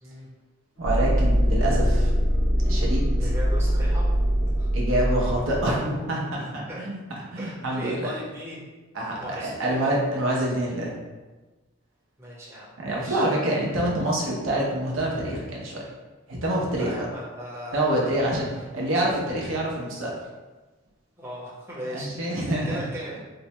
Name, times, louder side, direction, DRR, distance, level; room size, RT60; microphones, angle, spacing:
sound 1, 0.8-5.7, equal, 25° left, 0.6 m, -22 dB
voice 1, 0.8-2.1 2.6-3.3 4.7-7.0 7.3-8.1 8.9-11.0 12.8-15.8 16.3-17.1 17.7-18.5 18.7-20.1 21.9-22.8, right 1 dB, 70° right, -3 dB, 0.7 m, -26 dB
voice 2, 3.2-4.1 4.6-4.7 6.4-6.8 7.4-8.7 9.2-9.9 12.2-13.3 16.8-18.6 21.2-23.1, equal, 15° right, -7 dB, 0.8 m, -38 dB
4.4 x 2.1 x 2.9 m, 1.2 s
head